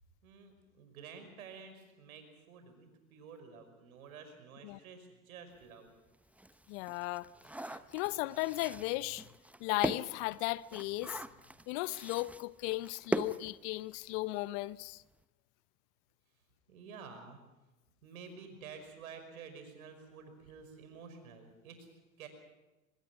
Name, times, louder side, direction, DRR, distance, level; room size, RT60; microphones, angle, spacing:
voice 1, 0.2-5.9 7.8-7.9 16.7-17.4 18.0-21.9 22.2-22.3, right 5 dB, 75° right, 5.7 m, -51 dB
sound 1, 5.6-5.7 6.1-14.2 14.5-14.6 14.9-15.1, right 1 dB, 5° right, 0.8 m, -41 dB
voice 2, 6.7-7.3 7.7-9.2 9.6-11.2 11.7-15.0, left 20 dB, 55° left, 0.8 m, -36 dB
25.0 x 21.5 x 6.1 m
hypercardioid pair, 85°, 43 cm